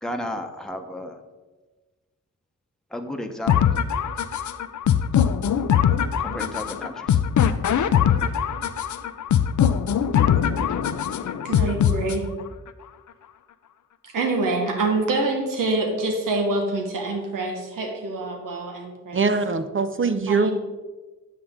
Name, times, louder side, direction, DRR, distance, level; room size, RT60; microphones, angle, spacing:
voice 1, 0.0-1.2 2.9-3.5 6.2-7.2, left 1 dB, ahead, 4 dB, 1.0 m, -33 dB
sound 1, 3.5-12.5, left 8 dB, 65° left, 0.5 m, -22 dB
voice 2, 11.4-12.3 14.0-19.2 20.3-20.5, right 2 dB, 85° right, 3 dB, 1.3 m, -26 dB
voice 3, 19.1-20.5, right 4 dB, 40° right, 10 dB, 0.7 m, -22 dB
9.4 x 6.5 x 3.7 m, 1.2 s
cardioid pair, 45°, 32 cm